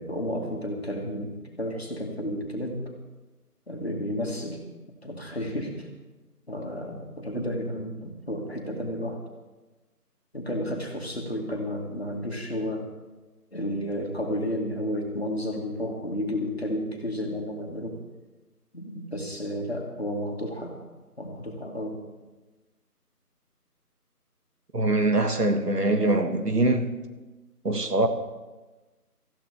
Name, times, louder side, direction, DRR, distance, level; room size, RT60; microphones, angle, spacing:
voice 1, 0.0-2.8 3.7-4.6 5.0-5.9 6.5-9.2 10.3-12.8 13.5-18.0 18.7-20.7 21.2-22.0, equal, 40° left, 2.1 m, -32 dB
voice 2, 24.7-26.9 27.6-28.1, right 2 dB, 80° right, 1.7 m, -23 dB
18.0 x 14.5 x 3.5 m
figure-of-eight pair, 175°, 47 cm